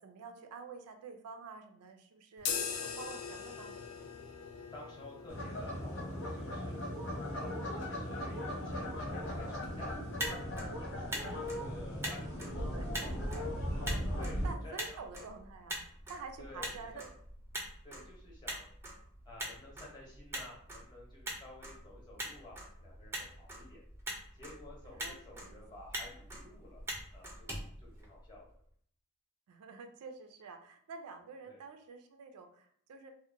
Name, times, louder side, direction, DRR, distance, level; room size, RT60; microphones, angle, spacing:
voice 1, 0.0-3.8 11.3-11.7 12.7-13.3 14.4-17.1 24.8-25.6 29.5-33.1, right 4 dB, 85° right, 6 dB, 0.4 m, -49 dB
sound 1, 2.4-10.2, left 6 dB, 80° left, 0.3 m, -43 dB
voice 2, 4.7-6.8 7.3-9.9 10.6-12.8 13.0-13.4 14.2-15.3 16.4-17.1 17.8-18.7 19.2-23.8 24.3-26.8 27.1-27.5 27.8-28.5 31.5-31.6, left 1 dB, 20° left, -3 dB, 0.7 m, -52 dB
sound 2, 5.3-14.5, equal, 60° left, 0.7 m, -38 dB
Motor vehicle (road), 10.0-28.5, right 1 dB, 10° right, 0.3 m, -44 dB
2.7 x 2.0 x 2.5 m, 0.63 s
head